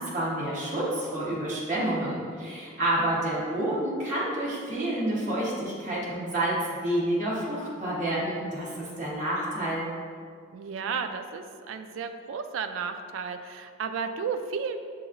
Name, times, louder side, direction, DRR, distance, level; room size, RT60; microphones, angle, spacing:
voice 1, 0.0-9.9, right 1 dB, 40° right, -8 dB, 1.0 m, -29 dB
voice 2, 10.5-14.8, right 6 dB, 65° right, 7 dB, 0.3 m, -33 dB
6.8 x 3.0 x 2.5 m, 2.1 s
head